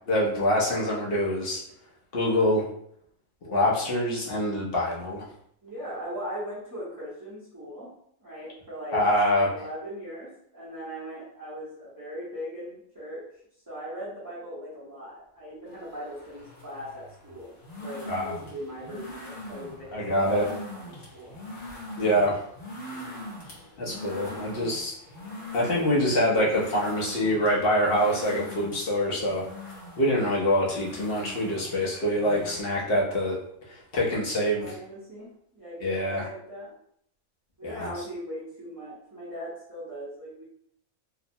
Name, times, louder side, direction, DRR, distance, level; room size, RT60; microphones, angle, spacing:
voice 1, 0.1-1.6 2.1-2.7 3.5-5.2 8.9-9.5 18.1-18.3 19.9-20.5 22.0-22.4 23.8-24.9 25.5-29.5 30.0-33.4 33.7-34.7 35.8-36.3 37.6-37.9, equal, 55° left, -4 dB, 0.8 m, -25 dB
voice 2, 5.6-7.9 8.2-9.0 9.4-13.2 13.7-21.4 22.8-23.2 34.4-36.7 37.6-40.5, equal, 20° right, -11 dB, 0.7 m, -39 dB
sound 1, 15.7-32.6, left 1 dB, 70° left, 1.2 m, -42 dB
2.8 x 2.0 x 2.6 m, 0.67 s
omnidirectional pair, 1.4 m